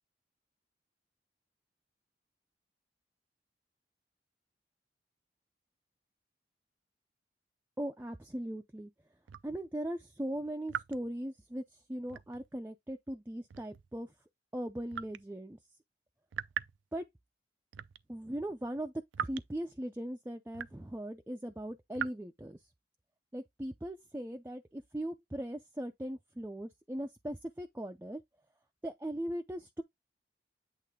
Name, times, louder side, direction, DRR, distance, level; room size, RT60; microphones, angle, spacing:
voice 1, 7.8-8.9 9.4-11.6 11.9-14.1 14.5-15.6 16.9-17.1 18.1-22.6 23.3-28.2 28.8-29.8, right 1 dB, 10° right, 0.4 m, -39 dB
sound 1, 9.3-9.5 10.7-11.1 12.1-12.5 13.5-13.9 14.9-15.2 16.3-16.8 17.7-18.0 19.1-19.4 20.5-20.9 21.9-22.1, right 9 dB, 90° right, 0.4 m, -39 dB
8.4 x 3.2 x 3.6 m
head